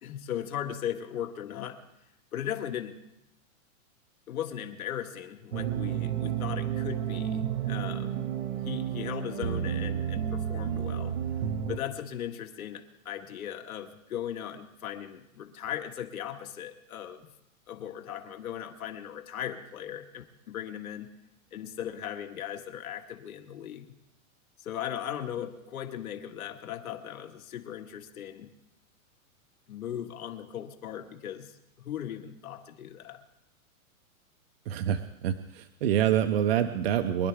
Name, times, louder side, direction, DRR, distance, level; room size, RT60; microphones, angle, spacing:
voice 1, 0.0-1.8 2.3-3.0 4.3-8.2 8.6-11.1 11.7-17.3 17.7-21.1 21.5-23.8 24.6-28.5 29.7-33.2, left 10 dB, 80° left, 4 dB, 1.9 m, -38 dB
sound 1, 5.5-11.8, right 9 dB, 90° right, 1.7 m, -31 dB
voice 2, 34.7-37.3, right 10 dB, 45° right, 8 dB, 0.7 m, -26 dB
24.0 x 11.5 x 3.5 m, 0.86 s
hypercardioid pair, 165°, 42 cm